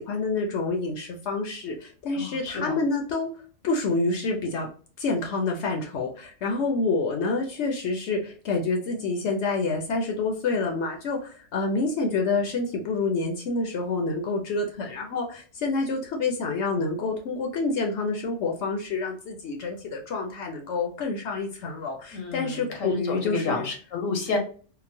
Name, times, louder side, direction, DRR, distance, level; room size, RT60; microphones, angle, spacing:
voice 1, 0.0-3.3 3.6-4.7 5.0-23.7, left 3 dB, 70° left, 2 dB, 0.8 m, -28 dB
voice 2, 2.1-2.8 22.1-24.4, left 4 dB, 85° left, 3 dB, 1.1 m, -30 dB
3.8 x 2.0 x 2.6 m, 0.41 s
omnidirectional pair, 1.3 m